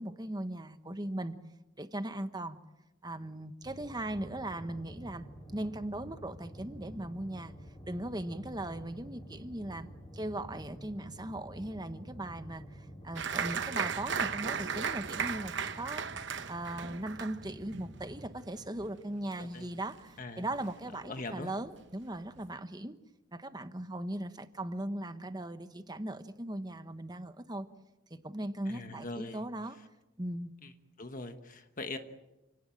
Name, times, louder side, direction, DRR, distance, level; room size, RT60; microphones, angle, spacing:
voice 1, 0.0-1.3 1.8-2.6 3.0-5.2 5.5-7.5 7.9-9.9 10.1-22.9 23.3-27.7 28.1-29.8 30.2-30.5, right 1 dB, 20° right, 10 dB, 1.1 m, -39 dB
sound 1, 3.6-18.3, equal, 25° left, 5.4 m, -49 dB
Applause, 13.2-20.2 20.5-21.2 21.6-21.7 22.0-22.5, right 6 dB, 55° right, 1.0 m, -36 dB
voice 2, 21.0-21.5 28.7-29.4 30.6-30.7 31.0-32.0, left 2 dB, 40° left, 7 dB, 1.3 m, -41 dB
29.0 x 18.5 x 9.1 m, 1.0 s
head